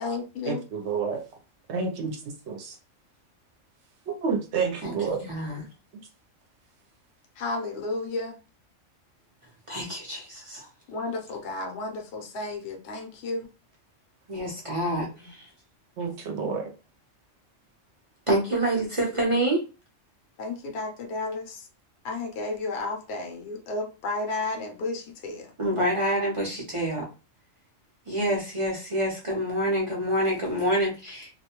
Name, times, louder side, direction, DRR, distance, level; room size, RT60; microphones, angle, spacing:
voice 1, 0.0-0.6 7.4-8.3 10.9-11.1 11.5-11.9 12.4-12.5 12.9-13.0 13.3-13.4 20.4-21.3 22.1-23.2 23.7-24.6 24.8-24.9, left 2 dB, 65° left, 2 dB, 0.8 m, -31 dB
voice 2, 0.9-1.2 1.7-2.2 2.5-2.7 4.1-5.3 16.0-16.7, right 5 dB, 65° right, 3 dB, 0.9 m, -29 dB
voice 3, 4.8-5.6 9.7-10.7 14.3-15.5 18.3-19.6 25.6-27.1 28.1-31.3, right 1 dB, 35° right, -3 dB, 0.6 m, -27 dB
2.4 x 2.2 x 2.8 m, 0.32 s
omnidirectional pair, 1.3 m